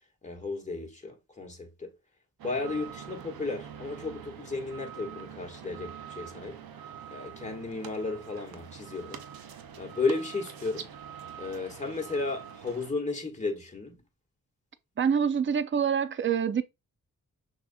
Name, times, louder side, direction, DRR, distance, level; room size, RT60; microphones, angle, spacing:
voice 1, 0.2-1.9 2.4-6.6 7.1-9.2 9.8-10.9 11.4-14.0, left 3 dB, 20° left, 1.6 m, -34 dB
sound 1, 2.4-12.9, right 8 dB, 85° right, 0.6 m, -45 dB
voice 2, 15.0-16.6, right 7 dB, 35° right, 0.5 m, -26 dB
6.1 x 2.9 x 2.3 m
cardioid pair, 55°, 35 cm